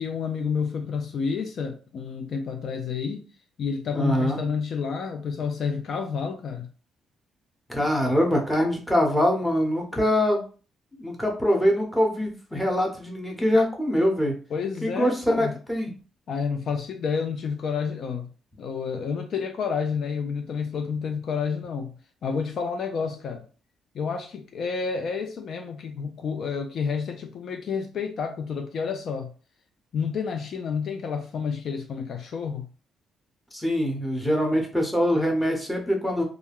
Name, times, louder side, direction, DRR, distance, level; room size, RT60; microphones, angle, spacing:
voice 1, 0.0-3.3 3.6-6.7 14.5-15.6 16.3-18.3 18.6-21.9 22.2-23.4 23.9-29.3 29.9-32.6, left 6 dB, 60° left, 0.3 m, -29 dB
voice 2, 3.9-4.4 7.7-10.4 10.9-14.3 14.8-15.9 33.5-36.2, equal, 5° left, 0.9 m, -23 dB
2.3 x 2.1 x 3.4 m
cardioid pair, 90°, 0 cm